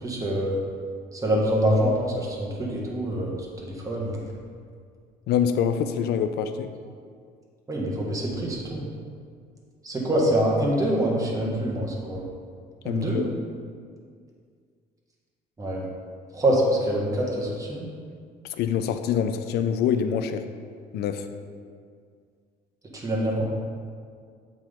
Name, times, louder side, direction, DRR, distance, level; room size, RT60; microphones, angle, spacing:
voice 1, 0.0-0.5 1.1-4.2 7.7-8.9 9.8-12.2 12.8-13.2 15.6-15.8 16.3-17.8 22.9-23.4, right 1 dB, 20° right, -3 dB, 1.5 m, -25 dB
voice 2, 5.3-6.7 12.8-13.3 18.5-20.4 20.9-21.3, left 8 dB, 75° left, 9 dB, 0.5 m, -25 dB
7.4 x 3.9 x 5.1 m, 2.1 s
cardioid pair, 110°, 17 cm